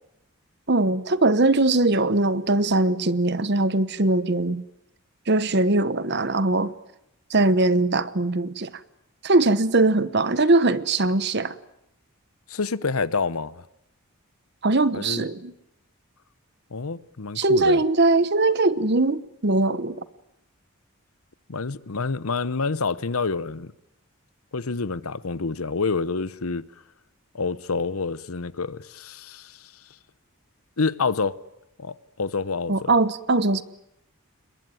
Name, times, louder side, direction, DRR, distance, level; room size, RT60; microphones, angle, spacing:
voice 1, 0.7-4.6 5.3-6.7 7.3-8.7 9.2-11.6 14.6-15.5 17.3-20.0 32.7-33.6, right 2 dB, 50° right, 1.1 m, -21 dB
voice 2, 12.5-13.7 14.9-15.2 16.7-17.8 21.5-23.7 24.5-26.6 27.3-29.7 30.8-31.3 31.8-32.9, left 4 dB, 80° left, 0.9 m, -28 dB
27.5 x 22.0 x 9.2 m
head